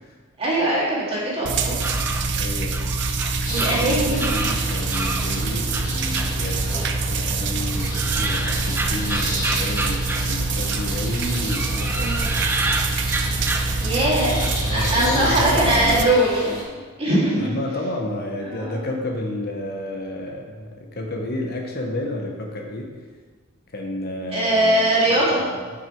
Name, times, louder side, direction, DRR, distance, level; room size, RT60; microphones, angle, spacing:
voice 1, 0.4-1.8 3.5-4.3 12.0-12.3 13.8-14.4 14.7-16.6 17.0-17.6 18.4-18.8 24.3-25.4, right 1 dB, 30° right, -6 dB, 2.2 m, -21 dB
sound 1, 1.4-16.0, right 3 dB, 60° right, 0.5 m, -25 dB
sound 2, 1.6-5.3 5.7-7.0 7.3-11.0 11.4-14.0 14.4-15.0, right 2 dB, 10° right, 0.4 m, -29 dB
voice 2, 2.4-2.8 3.6-12.4 14.0-16.1 17.4-23.0 23.7-25.5, left 1 dB, 50° left, 1 dB, 0.8 m, -31 dB
sound 3, 3.4-16.6, left 1 dB, 20° left, 1.7 m, -34 dB
6.6 x 5.9 x 4.5 m, 1.5 s
head